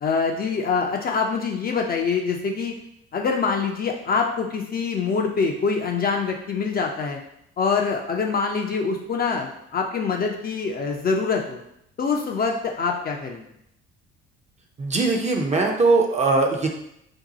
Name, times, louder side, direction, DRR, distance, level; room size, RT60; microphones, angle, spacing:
voice 1, 0.0-2.7 3.1-7.2 7.6-11.6 12.0-13.5, left 5 dB, 30° left, 1 dB, 0.4 m, -25 dB
voice 2, 14.8-16.7, right 3 dB, 20° right, 2 dB, 0.5 m, -20 dB
2.7 x 2.1 x 4.0 m, 0.77 s
hypercardioid pair, 55°, 33 cm